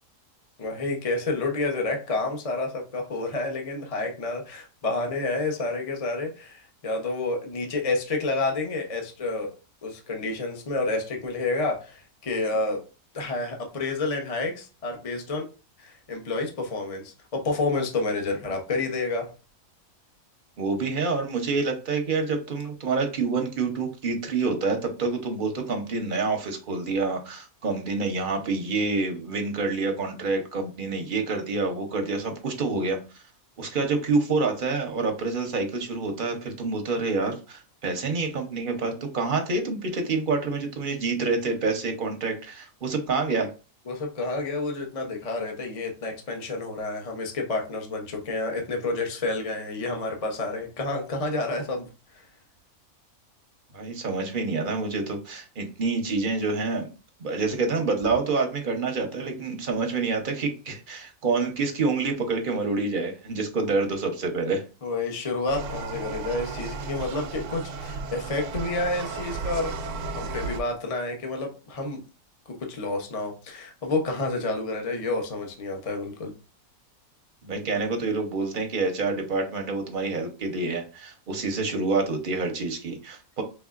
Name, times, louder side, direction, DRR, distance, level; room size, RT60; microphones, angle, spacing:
voice 1, 0.6-9.5 9.8-12.8 13.1-15.5 15.8-19.3 43.9-51.9 52.1-52.2 63.6-63.7 64.8-69.8 70.2-72.0 72.5-76.3, left 3 dB, 30° left, 2 dB, 0.7 m, -29 dB
voice 2, 20.6-33.0 33.6-43.5 53.7-56.9 57.2-64.6 77.4-83.4, right 3 dB, 40° right, 3 dB, 0.8 m, -27 dB
sound 1, 65.5-70.6, right 4 dB, 90° right, 1.1 m, -34 dB
5.3 x 3.3 x 2.4 m, 0.33 s
omnidirectional pair, 1.6 m